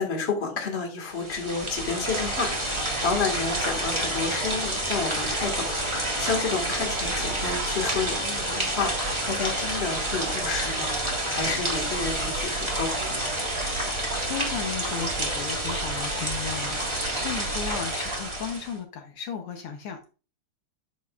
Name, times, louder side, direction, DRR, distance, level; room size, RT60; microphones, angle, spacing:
voice 1, 0.0-13.2, left 4 dB, 30° left, 2 dB, 1.5 m, -30 dB
sound 1, 1.1-18.7, right 1 dB, 15° right, 1.0 m, -29 dB
voice 2, 13.8-20.1, left 7 dB, 65° left, 4 dB, 1.4 m, -35 dB
9.3 x 6.9 x 2.4 m, 0.34 s
omnidirectional pair, 3.4 m